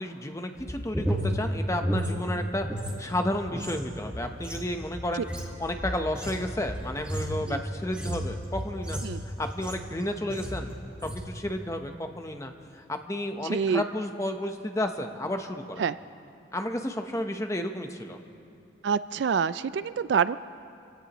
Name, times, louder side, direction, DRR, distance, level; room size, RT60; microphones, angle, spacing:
voice 1, 0.0-2.7 3.0-10.7 11.0-15.6 16.5-18.2, left 1 dB, 15° left, 5 dB, 0.9 m, -32 dB
sound 1, 0.6-2.9 3.2-9.9 10.3-10.7 10.9-11.3, equal, 5° right, 1.7 m, -33 dB
voice 2, 13.5-13.8 15.8-16.0 18.8-20.4, right 6 dB, 65° right, 15 dB, 0.3 m, -26 dB
27.5 x 17.0 x 3.1 m, 2.6 s
head